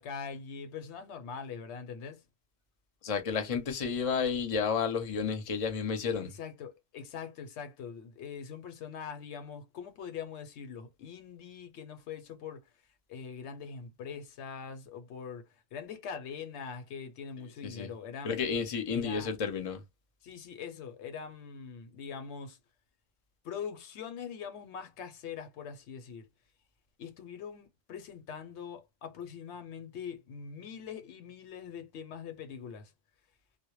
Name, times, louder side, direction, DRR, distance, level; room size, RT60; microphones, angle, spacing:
voice 1, 0.0-2.2 6.2-12.7 13.1-18.4 18.9-19.3 20.2-22.6 23.4-26.3 27.0-32.9, left 6 dB, 80° left, 0.9 m, -43 dB
voice 2, 3.0-6.3 17.4-17.9 18.2-19.8, left 6 dB, 40° left, 0.6 m, -31 dB
2.1 x 2.0 x 3.0 m
omnidirectional pair, 1.1 m